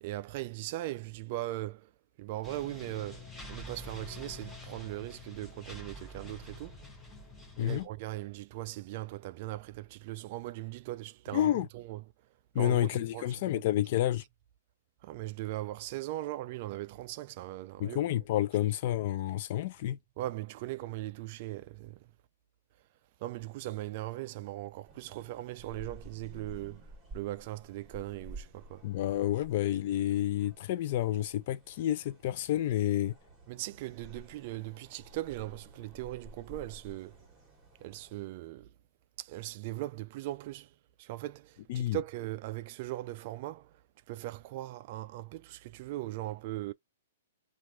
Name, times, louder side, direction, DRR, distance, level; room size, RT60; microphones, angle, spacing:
voice 1, 0.0-1.9 2.2-6.8 7.6-12.0 12.6-13.6 15.0-18.0 20.2-22.0 23.2-26.8 27.1-28.8 33.5-37.2 37.8-38.7 39.2-40.7 41.0-43.7 44.1-46.7, right 16 dB, 45° right, 0.3 m, -39 dB
sound 1, 2.4-7.9, left 1 dB, 10° left, 0.8 m, -47 dB
voice 2, 7.6-7.9 11.3-11.7 12.5-14.2 17.8-20.0 28.8-33.1 41.7-42.0, left 13 dB, 50° left, 0.4 m, -29 dB
sound 2, 24.9-38.2, right 1 dB, 10° right, 1.5 m, -52 dB
2.9 x 2.4 x 2.6 m
hypercardioid pair, 145°, 0 cm